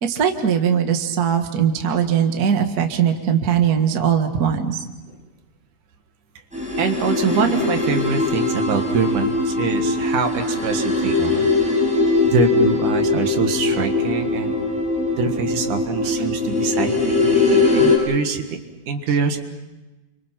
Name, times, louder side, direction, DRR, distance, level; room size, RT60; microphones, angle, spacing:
voice 1, 0.0-4.8 19.1-19.2, right 8 dB, 45° right, 5 dB, 1.2 m, -20 dB
sound 1, 6.5-18.0, left 3 dB, ahead, 7.8 m, -21 dB
voice 2, 6.8-11.5 12.2-14.5 15.2-18.6 18.9-19.4, right 5 dB, 65° right, 6 dB, 3.0 m, -24 dB
30.0 x 25.0 x 5.9 m, 1.1 s
omnidirectional pair, 4.2 m